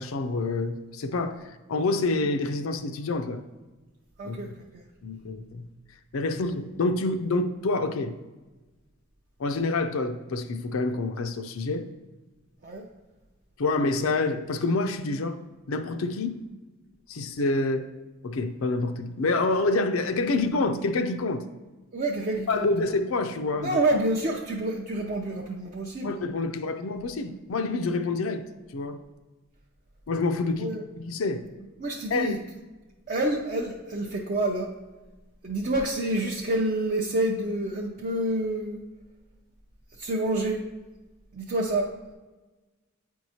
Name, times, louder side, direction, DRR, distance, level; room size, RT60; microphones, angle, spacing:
voice 1, 0.0-3.4 4.2-4.4 5.0-5.7 6.1-8.2 9.4-11.9 13.6-15.4 15.7-16.4 17.1-17.9 18.2-21.5 22.5-23.8 26.0-28.4 28.7-29.0 30.1-31.4 32.1-32.4, left 3 dB, 85° left, 0.5 m, -27 dB
voice 2, 4.2-4.8 12.6-12.8 21.9-22.7 23.6-26.2 30.6-30.8 31.8-32.4 33.1-34.7 35.4-38.8 40.0-40.6 41.3-41.9, right 1 dB, 40° right, 0.5 m, -28 dB
8.6 x 4.6 x 2.8 m
head